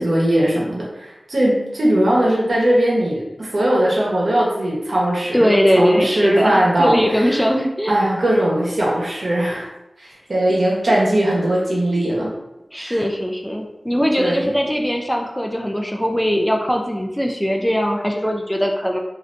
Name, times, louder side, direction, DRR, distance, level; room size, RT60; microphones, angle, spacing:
voice 1, 0.0-7.5 7.9-9.7 10.0-12.3 12.8-13.0 14.2-14.5, right 1 dB, 75° right, -4 dB, 1.0 m, -19 dB
voice 2, 5.3-7.9 12.7-19.0, equal, 5° left, 1 dB, 0.4 m, -20 dB
3.1 x 2.7 x 2.6 m, 0.95 s
cardioid pair, 45°, 0 cm